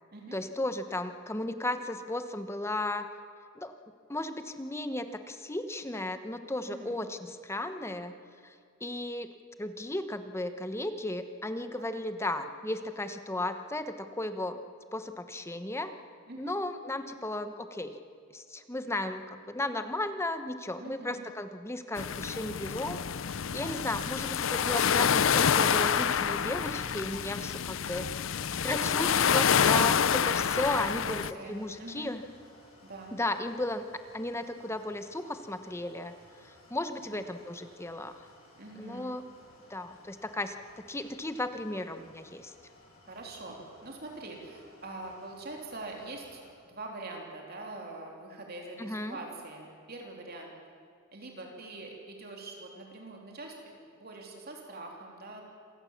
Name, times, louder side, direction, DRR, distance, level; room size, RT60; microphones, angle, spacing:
voice 1, 0.3-3.1 3.5-3.7 4.1-8.1 8.4-8.5 8.8-9.3 9.6-14.6 14.9-15.9 16.4-18.0 18.3-23.0 23.5-28.1 28.6-32.2 33.1-33.9 34.1-36.2 36.7-38.2 38.8-39.2 39.7-42.5 48.8-49.2, left 1 dB, 15° left, 9 dB, 1.0 m, -35 dB
voice 2, 6.7-7.0 11.7-11.9 16.3-16.6 20.8-21.3 23.5-23.7 29.0-29.1 30.9-32.1 32.8-33.1 37.0-37.2 38.6-39.1 43.1-50.5 51.1-53.7 54.0-55.4, right 2 dB, 50° right, 1 dB, 3.3 m, -44 dB
sound 1, 22.0-31.3, left 7 dB, 65° left, 0.6 m, -27 dB
sound 2, 29.4-46.5, left 2 dB, 90° left, 7.9 m, -56 dB
27.0 x 18.0 x 7.3 m, 2.2 s
head